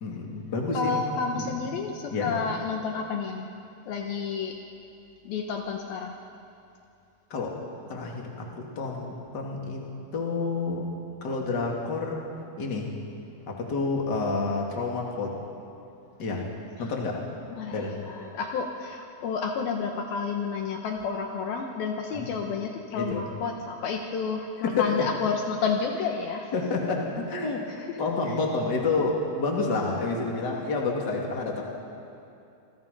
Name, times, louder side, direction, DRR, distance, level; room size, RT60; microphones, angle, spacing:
voice 1, 0.0-1.6 2.1-2.3 7.3-7.6 7.9-10.9 11.2-12.3 12.6-12.9 13.5-15.4 16.2-16.5 16.8-17.2 17.7-18.0 22.1-22.2 22.9-23.2 24.6-24.9 26.5-27.7 28.0-31.6, left 3 dB, 30° left, -1 dB, 2.8 m, -29 dB
voice 2, 0.7-3.5 3.9-4.6 5.2-6.2 16.8-16.9 17.6-26.5 27.8-28.0, left 5 dB, 70° left, 2 dB, 2.8 m, -30 dB
27.5 x 23.5 x 5.5 m, 2.6 s
omnidirectional pair, 4.8 m